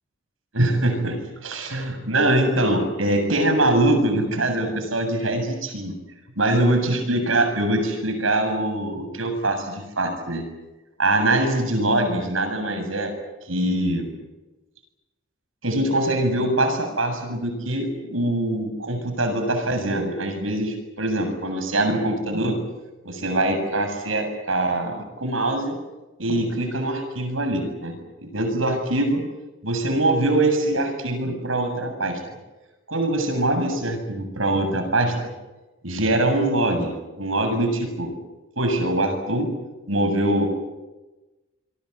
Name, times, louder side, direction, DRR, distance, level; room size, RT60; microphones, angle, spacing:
voice 1, 0.5-5.9 6.4-10.4 11.0-13.1 13.5-14.1 15.6-22.6 23.0-25.8 26.2-29.2 29.6-32.2 32.9-35.1 35.8-38.1 38.6-39.5 39.9-40.5, right 1 dB, 85° right, 6 dB, 7.7 m, -23 dB
27.5 x 23.0 x 8.2 m, 1.1 s
head